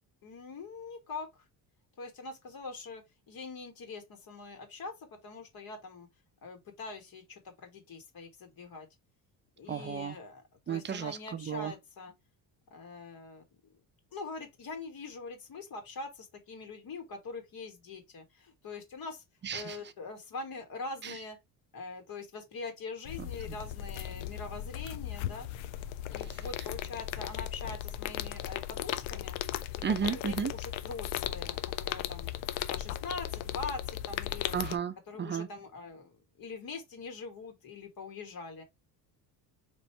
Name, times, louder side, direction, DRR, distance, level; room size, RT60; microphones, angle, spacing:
voice 1, 0.2-1.5 2.0-6.1 6.4-8.9 9.6-12.1 12.7-13.4 14.1-19.2 19.5-21.4 21.7-25.5 26.1-29.4 29.9-32.3 32.7-34.5 35.1-38.6, left 4 dB, 50° left, 1.5 m, -43 dB
voice 2, 9.7-10.2 10.7-11.7 19.4-19.8 21.0-21.2 23.2-23.3 26.2-26.4 29.8-30.5 34.5-35.5, right 7 dB, 25° right, 0.6 m, -34 dB
sound 1, 23.1-34.8, left 12 dB, 85° left, 0.5 m, -37 dB
3.1 x 2.6 x 4.3 m
cardioid pair, 90°, 44 cm